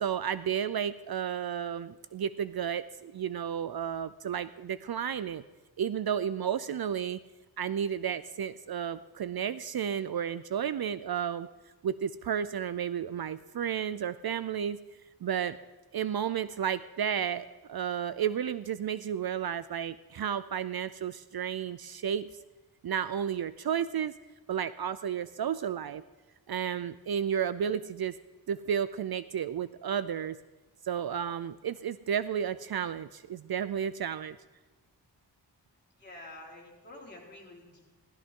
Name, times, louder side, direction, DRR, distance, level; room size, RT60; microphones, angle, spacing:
voice 1, 0.0-5.4 5.8-7.2 7.6-11.5 11.8-14.8 15.2-15.6 15.9-22.3 22.8-24.1 24.5-26.0 26.5-28.1 28.5-30.4 30.8-34.4, right 8 dB, 60° right, 15 dB, 0.5 m, -32 dB
voice 2, 36.0-37.8, left 1 dB, 25° left, -4 dB, 4.1 m, -48 dB
16.0 x 13.5 x 3.7 m, 1.2 s
wide cardioid pair, 95°, 43 cm